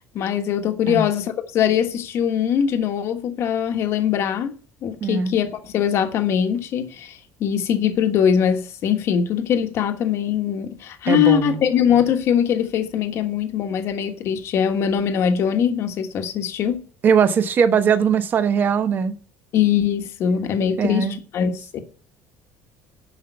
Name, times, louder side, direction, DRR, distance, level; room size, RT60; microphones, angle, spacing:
voice 1, 0.1-4.5 4.8-16.9 19.5-21.8, left 8 dB, 45° left, 1.4 m, -22 dB
voice 2, 5.0-5.3 11.1-11.6 17.0-19.1 20.8-21.2, right 6 dB, 30° right, 0.9 m, -20 dB
10.5 x 5.5 x 6.8 m
cardioid pair, 165°, 6 cm